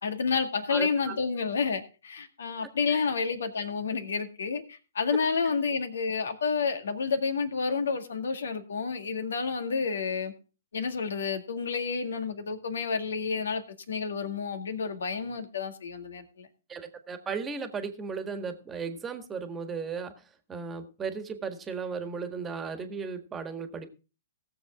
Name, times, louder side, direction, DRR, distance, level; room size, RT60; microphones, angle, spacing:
voice 1, 0.0-10.3 10.7-13.6 13.9-16.5, left 5 dB, 75° left, 8 dB, 1.9 m, -30 dB
voice 2, 0.7-1.2 2.9-3.1 16.7-20.1 20.5-23.9, right 5 dB, 15° right, 8 dB, 1.6 m, -36 dB
17.5 x 7.3 x 3.7 m, 0.34 s
hypercardioid pair, 125°, 0 cm